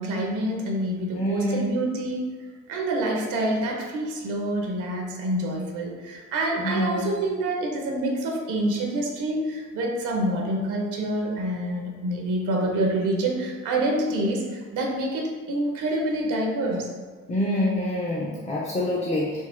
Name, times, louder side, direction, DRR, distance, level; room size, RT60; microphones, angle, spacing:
voice 1, 0.0-2.2 2.7-16.9, right 1 dB, 85° right, 0 dB, 0.7 m, -27 dB
voice 2, 1.1-1.7 6.6-7.2 17.3-19.4, left 1 dB, 25° left, -5 dB, 0.4 m, -26 dB
3.8 x 2.1 x 2.4 m, 1.5 s
cardioid pair, 90°, 30 cm